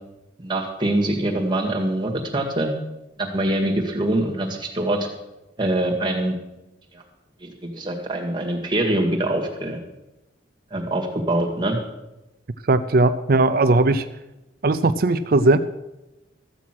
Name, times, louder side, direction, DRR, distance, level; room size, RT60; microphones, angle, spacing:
voice 1, 0.4-2.7 3.2-5.1 5.6-6.4 6.9-7.0 7.4-9.8 10.7-11.8, right 1 dB, 25° right, 0 dB, 1.9 m, -24 dB
voice 2, 12.6-14.1 14.6-15.6, right 2 dB, 50° right, 10 dB, 0.5 m, -18 dB
14.0 x 8.4 x 6.1 m, 0.97 s
head